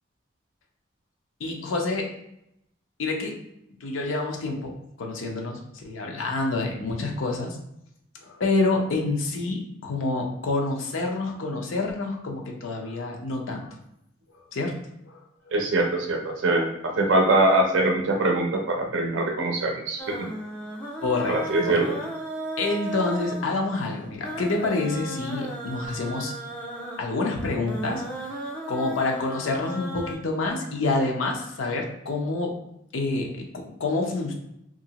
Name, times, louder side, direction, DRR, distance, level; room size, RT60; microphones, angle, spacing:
voice 1, 1.4-2.1 3.0-3.4 3.8-7.6 8.2-13.7 14.3-14.7 15.1-15.6 21.0-21.4 21.6-21.8 22.6-26.3 27.0-28.0 28.7-32.6 32.9-34.3, left 3 dB, 85° left, 1 dB, 0.6 m, -27 dB
voice 2, 15.5-20.3 21.3-21.9, right 2 dB, 70° right, 2 dB, 0.4 m, -23 dB
sound 1, 20.0-30.1, right 1 dB, 5° left, 0.4 m, -35 dB
2.7 x 2.5 x 2.8 m, 0.79 s
head